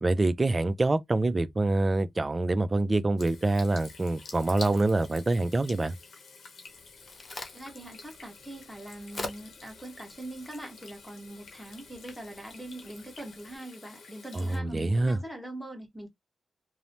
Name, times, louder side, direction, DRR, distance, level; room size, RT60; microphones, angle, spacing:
voice 1, 0.0-6.0 14.3-15.2, right 2 dB, 30° right, 0.3 m, -26 dB
Water tap faucet / Sink (filling or washing), 3.2-14.6, left 4 dB, 80° left, 0.8 m, -49 dB
Crack, 6.7-13.6, left 2 dB, 35° left, 0.8 m, -46 dB
voice 2, 7.5-16.1, right 1 dB, 5° left, 1.1 m, -42 dB
3.0 x 2.0 x 2.6 m
cardioid pair, 80°, 0 cm